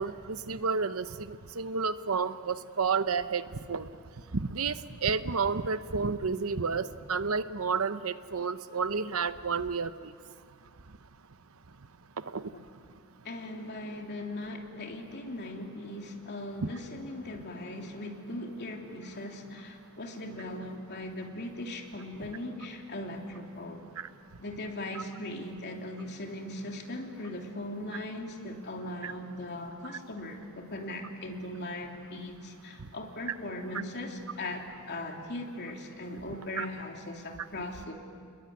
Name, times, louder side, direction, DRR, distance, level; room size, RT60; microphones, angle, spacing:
voice 1, 0.0-3.4 3.7-3.9 4.3-10.1 12.3-12.5 16.6-16.7 24.0-24.1 29.0-29.1 36.6-36.7, right 5 dB, 70° right, 12 dB, 0.9 m, -31 dB
voice 2, 13.2-23.8 24.4-37.9, left 1 dB, 50° left, 2 dB, 3.2 m, -39 dB
29.5 x 21.0 x 9.5 m, 2.2 s
head